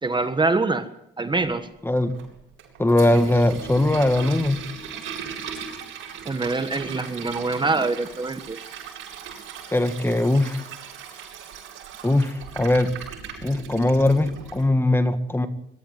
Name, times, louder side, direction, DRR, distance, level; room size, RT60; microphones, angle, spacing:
voice 1, 0.0-0.9 1.2-1.7 6.2-8.6, right 3 dB, 25° right, 9 dB, 1.5 m, -24 dB
Toilet flush, 1.9-14.7, right 7 dB, 85° right, 7.6 m, -38 dB
voice 2, 2.8-4.6 9.7-10.6 12.0-12.9 13.4-15.5, left 1 dB, 10° left, 9 dB, 2.0 m, -20 dB
22.5 x 13.0 x 9.5 m, 0.79 s
cardioid pair, 90°, 20 cm